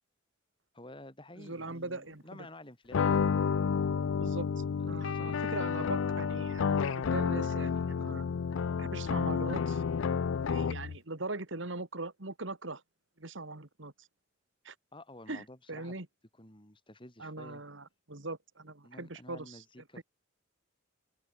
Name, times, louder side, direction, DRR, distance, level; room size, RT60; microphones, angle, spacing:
voice 1, 0.7-3.0 3.9-4.4 4.8-5.5 14.9-16.0 16.4-17.6 18.8-20.0, left 1 dB, 25° left, 4.8 m, -51 dB
voice 2, 1.4-2.5 4.2-4.5 4.8-8.3 8.8-9.8 10.4-12.8 13.2-14.1 14.6-14.7 15.3-16.1 17.2-19.6 20.0-20.1, right 2 dB, 65° right, 2.2 m, -41 dB
sound 1, 2.9-11.0, left 6 dB, 75° left, 0.4 m, -30 dB
open air
head